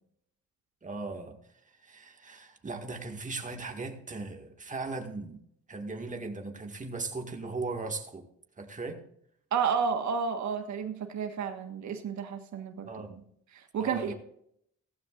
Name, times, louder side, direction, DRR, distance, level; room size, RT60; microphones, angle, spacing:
voice 1, 0.8-1.4 1.8-5.4 5.7-8.3 8.6-9.0 12.9-13.1 13.8-14.1, right 3 dB, 25° right, 3 dB, 2.0 m, -38 dB
voice 2, 9.5-13.2 13.5-14.1, right 6 dB, 70° right, 5 dB, 1.6 m, -31 dB
16.5 x 14.5 x 2.5 m, 0.70 s
cardioid pair, 90°, 30 cm